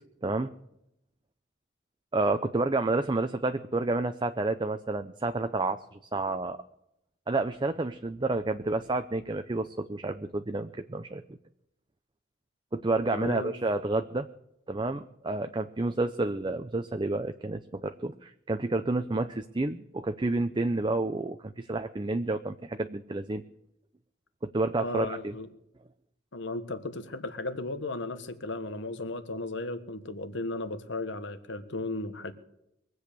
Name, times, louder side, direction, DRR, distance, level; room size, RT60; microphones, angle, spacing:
voice 1, 2.1-6.6 7.3-11.2 12.7-14.3 14.7-23.4 24.5-25.3, right 2 dB, 25° right, 8 dB, 0.6 m, -30 dB
voice 2, 13.1-13.5 24.8-25.5 26.3-32.3, left 2 dB, 65° left, 10 dB, 1.5 m, -35 dB
22.5 x 8.1 x 6.8 m, 0.81 s
head